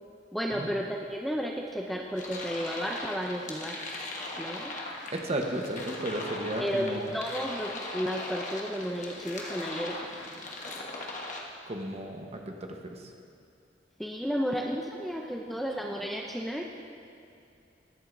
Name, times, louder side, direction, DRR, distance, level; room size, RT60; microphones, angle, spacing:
voice 1, 0.3-3.8 4.4-4.7 6.6-10.0 14.0-16.7, equal, ahead, 0 dB, 0.4 m, -33 dB
sound 1, 2.1-11.4, left 2 dB, 45° left, 1.2 m, -39 dB
voice 2, 5.1-7.1 11.7-13.1, right 1 dB, 35° right, 2 dB, 1.0 m, -34 dB
21.5 x 7.6 x 2.6 m, 2.6 s
head